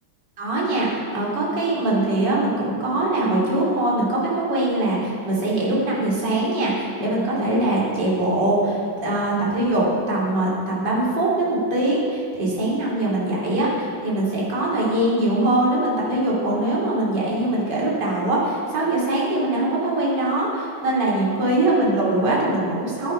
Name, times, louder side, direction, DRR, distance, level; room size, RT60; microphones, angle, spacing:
voice 1, 0.4-23.1, right 1 dB, 60° right, -5 dB, 3.3 m, -22 dB
10.5 x 10.5 x 5.4 m, 2.2 s
omnidirectional pair, 2.2 m